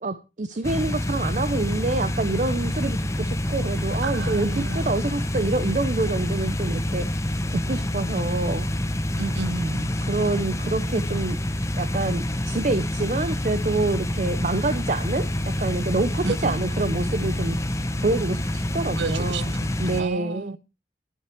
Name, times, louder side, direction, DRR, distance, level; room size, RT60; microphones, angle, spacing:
voice 1, 0.0-8.7 10.0-11.4 11.8-17.6 18.0-19.5 19.8-20.6, right 2 dB, 45° right, 0.7 m, -27 dB
sound 1, 0.6-20.0, left 1 dB, 15° left, 0.9 m, -27 dB
voice 2, 4.0-4.9 9.2-9.9 16.2-16.6 19.0-19.7 20.0-20.6, right 4 dB, 80° right, 0.6 m, -32 dB
11.0 x 9.5 x 4.4 m
head